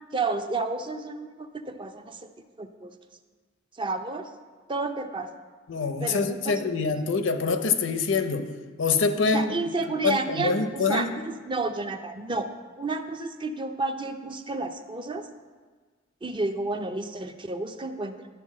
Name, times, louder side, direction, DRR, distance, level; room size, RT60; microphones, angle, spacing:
voice 1, 0.1-2.3 2.6-2.9 3.7-4.3 4.7-5.3 6.0-6.7 9.3-12.5 12.8-15.3 16.2-18.1, right 3 dB, 25° right, 7 dB, 0.5 m, -31 dB
voice 2, 5.7-8.5 8.8-9.5 10.0-11.1, left 4 dB, 90° left, 8 dB, 0.7 m, -25 dB
11.0 x 3.9 x 7.3 m, 1.4 s
head